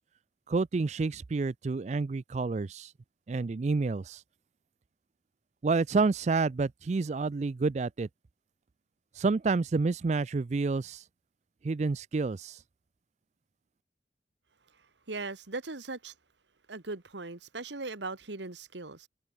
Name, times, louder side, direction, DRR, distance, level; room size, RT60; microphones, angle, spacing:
voice 1, 0.5-2.9 3.3-4.2 5.6-8.1 9.2-11.0 11.6-12.6, right 4 dB, 40° right, 0.4 m, -29 dB
voice 2, 15.1-16.1 16.7-19.1, right 3 dB, 75° right, 1.6 m, -39 dB
head